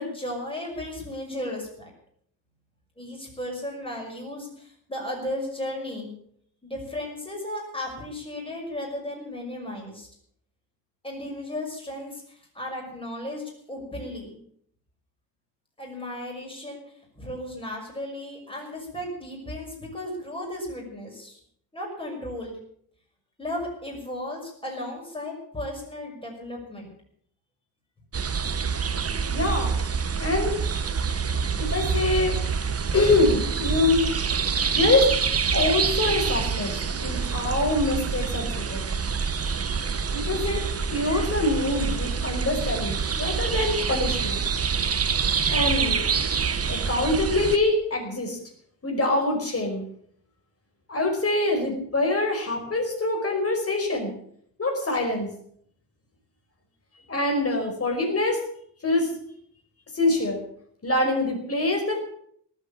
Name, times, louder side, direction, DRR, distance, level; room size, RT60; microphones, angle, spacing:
voice 1, 0.0-1.9 3.0-6.1 6.6-10.1 11.0-14.4 15.8-21.4 21.7-22.6 23.4-26.9, left 1 dB, 15° left, -1 dB, 6.0 m, -35 dB
sound 1, 28.1-47.6, right 6 dB, 35° right, 1.0 m, -26 dB
voice 2, 29.3-29.7 30.2-30.6 31.6-32.4 32.9-34.1 34.7-35.1 35.5-38.8 40.1-40.6 40.9-44.5 45.5-46.0 46.7-48.4 48.8-49.8 50.9-54.1 54.6-55.3 57.1-58.4 58.8-59.1 59.9-60.4 60.8-62.0, left 2 dB, 35° left, 2 dB, 5.1 m, -24 dB
18.5 x 8.3 x 8.5 m, 0.65 s
wide cardioid pair, 165°, 41 cm